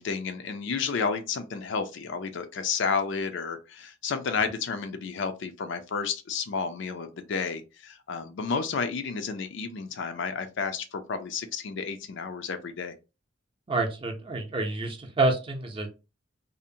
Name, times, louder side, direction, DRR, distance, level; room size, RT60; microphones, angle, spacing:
voice 1, 0.0-12.9, left 5 dB, 65° left, 0.4 m, -31 dB
voice 2, 13.7-15.9, right 2 dB, 25° right, 0.6 m, -28 dB
2.7 x 2.1 x 2.6 m
head